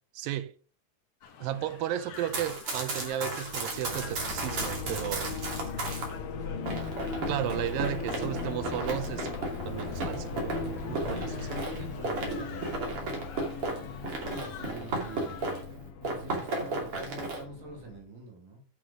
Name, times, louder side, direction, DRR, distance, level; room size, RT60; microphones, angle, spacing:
voice 1, 0.1-0.5 1.4-5.4 7.3-11.5, right 11 dB, 80° right, 2.3 m, -34 dB
sound 1, 1.2-15.6, left 6 dB, 55° left, 1.7 m, -48 dB
Run, 2.1-6.1 6.7-15.7 16.0-17.4, right 3 dB, 40° right, 3.3 m, -35 dB
sound 2, 3.1-18.0, left 5 dB, 70° left, 2.8 m, -39 dB
voice 2, 11.0-13.3 14.0-15.4 16.0-18.7, right 2 dB, 65° right, 3.9 m, -45 dB
9.3 x 6.1 x 6.2 m
omnidirectional pair, 4.2 m